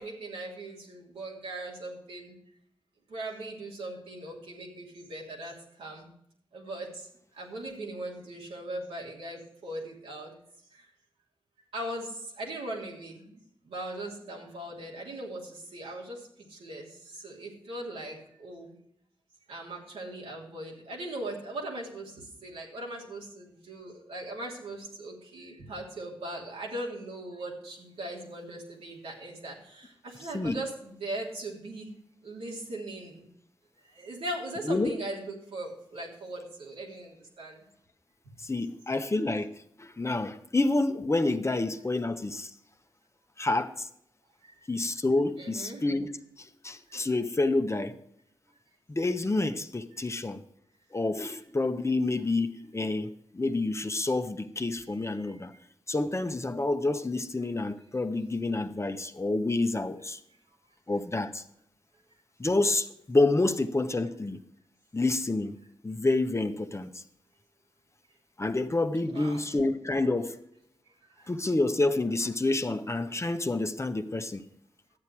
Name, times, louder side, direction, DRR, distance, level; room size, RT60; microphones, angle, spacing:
voice 1, 0.0-2.3 3.1-6.1 6.5-10.3 10.7-10.9 11.7-13.4 13.6-18.8 19.5-31.9 32.2-33.2 33.8-37.6 38.2-38.4 44.4-44.5 45.4-45.8 55.2-55.4 69.1-69.5 71.1-71.3, right 1 dB, 90° right, -3 dB, 3.0 m, -39 dB
voice 2, 34.6-35.0 38.4-39.5 39.8-42.5 43.4-43.9 44.7-48.0 48.9-50.4 50.9-55.6 55.9-60.2 60.9-61.4 62.4-64.4 64.9-65.6 65.8-67.0 68.4-70.4 71.3-74.4, left 2 dB, 30° left, 8 dB, 1.1 m, -28 dB
12.0 x 8.3 x 4.7 m, 0.74 s
cardioid pair, 40°, 10 cm